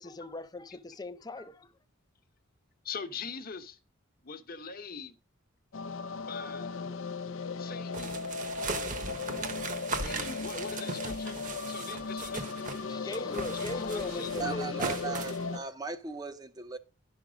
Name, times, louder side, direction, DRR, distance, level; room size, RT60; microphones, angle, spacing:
voice 1, 0.0-1.7 12.9-15.7, left 2 dB, 20° left, 0.5 m, -40 dB
voice 2, 2.8-3.8 4.2-5.2 6.3-6.8 7.6-8.3 10.0-11.4 11.7-12.7 13.0-14.6, left 5 dB, 45° left, 1.0 m, -42 dB
sound 1, 5.7-15.6, left 4 dB, 75° left, 0.6 m, -37 dB
sound 2, 7.9-12.8 13.1-15.4, right 4 dB, 40° right, 1.1 m, -38 dB
voice 3, 14.4-16.8, right 5 dB, 20° right, 0.7 m, -37 dB
11.0 x 6.0 x 5.1 m
head